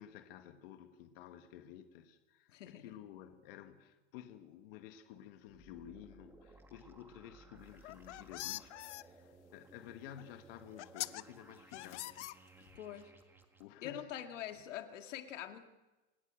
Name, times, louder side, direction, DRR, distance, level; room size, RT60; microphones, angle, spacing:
voice 1, 0.0-12.2 12.6-12.7 13.6-14.3, left 10 dB, 50° left, 1.7 m, -53 dB
voice 2, 2.5-3.0 11.7-12.0 12.8-13.1 13.8-15.7, left 11 dB, 85° left, 2.1 m, -45 dB
sound 1, 5.5-13.6, right 3 dB, 5° right, 1.5 m, -60 dB
sound 2, 7.7-9.0 10.2-10.3 10.8-11.2 11.7-12.8, left 17 dB, 70° left, 0.8 m, -43 dB
30.0 x 18.0 x 6.4 m
supercardioid pair, 165°, 36 cm